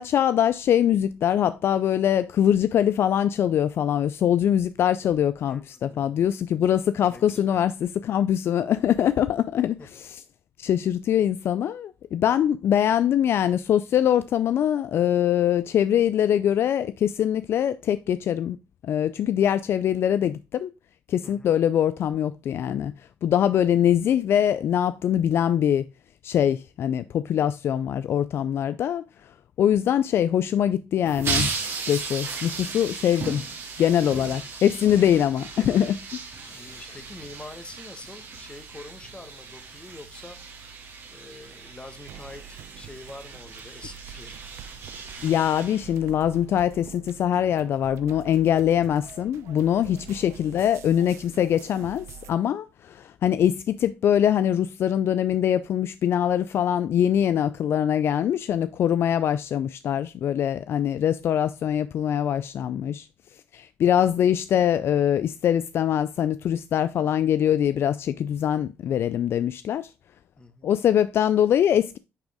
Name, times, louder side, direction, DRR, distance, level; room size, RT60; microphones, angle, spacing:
voice 1, 0.0-10.2 10.6-18.6 18.8-20.7 21.1-22.9 23.2-25.8 26.2-29.3 29.6-33.5 33.8-36.0 36.5-36.7 45.2-63.1 63.5-69.9 70.6-72.0, left 10 dB, 60° left, 0.3 m, -23 dB
voice 2, 5.4-6.1 7.1-7.6 9.8-9.9 21.2-21.5 34.8-35.4 36.5-40.8 41.1-44.5 49.9-50.2 70.4-70.7, left 2 dB, 20° left, 1.3 m, -45 dB
sound 1, 31.0-46.4, right 4 dB, 60° right, 2.0 m, -36 dB
sound 2, 42.1-52.3, right 9 dB, 80° right, 0.5 m, -46 dB
8.9 x 3.5 x 3.5 m
cardioid pair, 75°, 5 cm